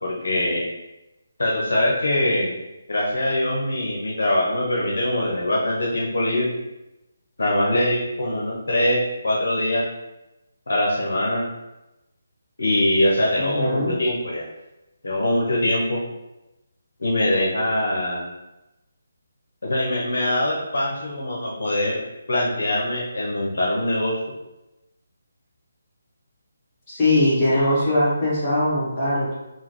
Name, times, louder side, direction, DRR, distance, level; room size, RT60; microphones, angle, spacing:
voice 1, 0.0-0.7 1.4-2.5 2.9-6.5 7.4-9.8 10.7-11.5 12.6-14.4 15.0-16.0 17.0-18.2 19.6-22.0 22.3-24.1, left 1 dB, 75° left, -3 dB, 0.8 m, -23 dB
voice 2, 13.3-13.9 26.9-29.4, left 1 dB, 25° left, -10 dB, 1.5 m, -21 dB
3.8 x 2.1 x 3.0 m, 0.97 s
figure-of-eight pair, 160°, 0 cm